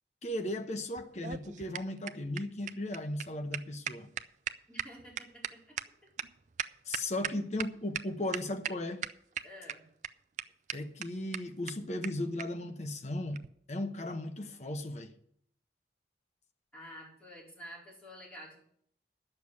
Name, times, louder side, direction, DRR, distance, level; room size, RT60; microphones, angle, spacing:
voice 1, 0.2-4.1 6.9-9.0 10.7-13.4 13.7-15.1, left 1 dB, 40° left, 1.0 m, -36 dB
sound 1, 1.0-7.7 7.9-8.0 8.3-8.7 9.0-9.7 10.0-10.1 10.4-10.5 10.7-10.8 11.0-11.1 11.3-11.4 11.7-11.8 12.0-12.1 12.4-12.5 13.3-13.5, right 9 dB, 45° right, 0.4 m, -37 dB
voice 2, 4.7-5.8 9.4-9.9 16.7-18.6, equal, 5° left, 4.4 m, -49 dB
10.0 x 6.9 x 8.3 m
head